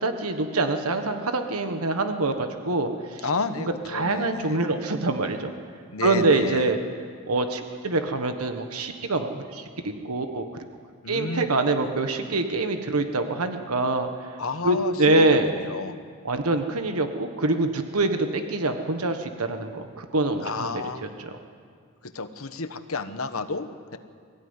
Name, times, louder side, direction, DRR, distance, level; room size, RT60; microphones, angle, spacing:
voice 1, 0.0-3.3 3.9-5.5 6.0-6.8 7.3-10.5 11.1-14.3 14.6-15.5 16.2-20.8 21.2-21.4, right 2 dB, 85° right, 7 dB, 1.4 m, -25 dB
voice 2, 3.2-4.6 5.9-6.7 11.0-11.4 14.4-16.0 20.4-21.1 22.0-24.0, left 4 dB, 75° left, 9 dB, 1.2 m, -31 dB
22.5 x 15.5 x 9.7 m, 2.1 s
head